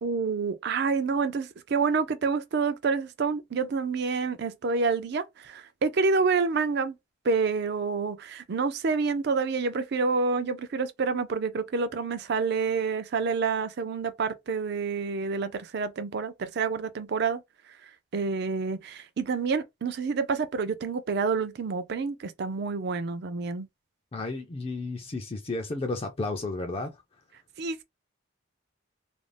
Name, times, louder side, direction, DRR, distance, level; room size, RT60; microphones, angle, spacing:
voice 1, 0.0-7.0 7.2-17.4 18.1-23.7 27.6-27.8, right 4 dB, 50° right, 0.4 m, -28 dB
voice 2, 24.1-26.9, left 2 dB, 30° left, 0.4 m, -32 dB
2.5 x 2.0 x 3.2 m
head